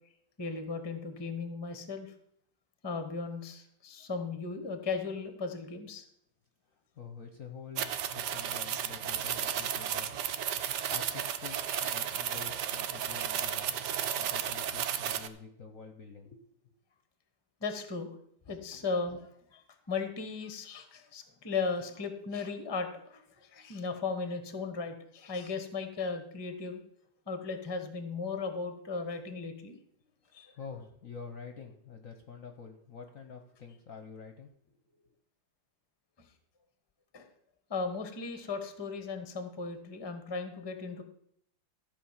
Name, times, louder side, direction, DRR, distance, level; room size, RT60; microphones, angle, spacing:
voice 1, 0.4-2.1 2.8-6.0 17.6-18.1 18.5-26.8 27.3-29.7 30.3-30.5 36.2-36.3 37.1-37.3 37.7-41.0, left 4 dB, 20° left, 8 dB, 0.7 m, -36 dB
voice 2, 6.7-10.2 10.9-13.8 14.2-16.7 30.5-34.5 34.8-35.1, left 5 dB, 55° left, 5 dB, 1.0 m, -48 dB
sound 1, 7.8-15.3, right 9 dB, 65° right, 1.1 m, -33 dB
14.0 x 5.0 x 7.2 m, 0.70 s
omnidirectional pair, 2.3 m